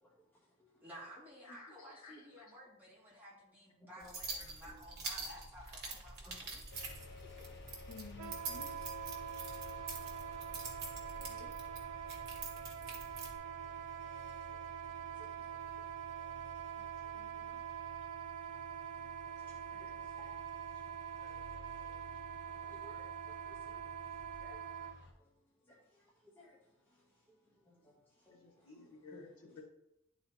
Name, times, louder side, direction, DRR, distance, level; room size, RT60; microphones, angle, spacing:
voice 1, 0.8-6.6, equal, 10° right, -7 dB, 2.5 m, -54 dB
voice 2, 1.4-2.5 4.4-4.5 5.1-5.2 5.8-5.9 7.9-8.7 11.2-11.5 16.8-16.9 17.1-17.6 21.2-21.4 28.4-29.6, left 3 dB, 85° left, -1 dB, 2.0 m, -55 dB
sound 1, 4.0-13.3, right 3 dB, 50° right, 1.6 m, -46 dB
sound 2, 6.7-25.1, left 3 dB, 55° left, 1.1 m, -55 dB
Wind instrument woodwind instrument, 8.2-24.9, right 9 dB, 75° right, 0.5 m, -45 dB
voice 3, 19.5-20.3 21.6-21.7 22.8-23.8 24.4-24.6 25.7-25.8 26.4-26.6 27.7-27.8 28.3-28.4 29.1-29.2, left 2 dB, 10° left, -6 dB, 1.0 m, -59 dB
11.0 x 4.1 x 3.0 m, 0.84 s
head